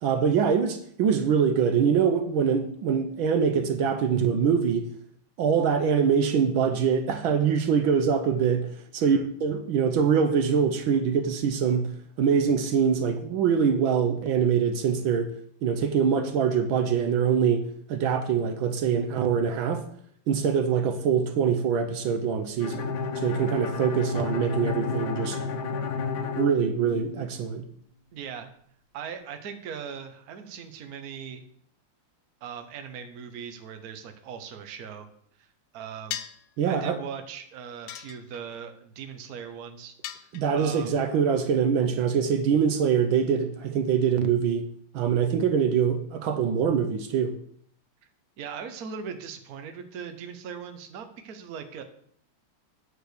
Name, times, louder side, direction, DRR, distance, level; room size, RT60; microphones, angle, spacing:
voice 1, 0.0-4.9 5.4-15.3 15.6-19.8 20.3-25.4 26.4-27.6 36.6-37.0 40.3-44.7 44.9-47.4, right 7 dB, 70° right, 1.4 m, -24 dB
Bowed string instrument, 22.6-27.4, left 4 dB, 60° left, 1.4 m, -31 dB
voice 2, 28.1-28.5 28.9-31.4 32.4-35.1 35.4-36.2 36.6-39.9 40.2-40.9 48.4-51.8, right 7 dB, 55° right, 1.2 m, -39 dB
sound 1, 36.1-36.5 37.9-38.6 40.0-40.8, left 11 dB, 85° left, 1.5 m, -37 dB
9.0 x 4.7 x 6.6 m
omnidirectional pair, 2.4 m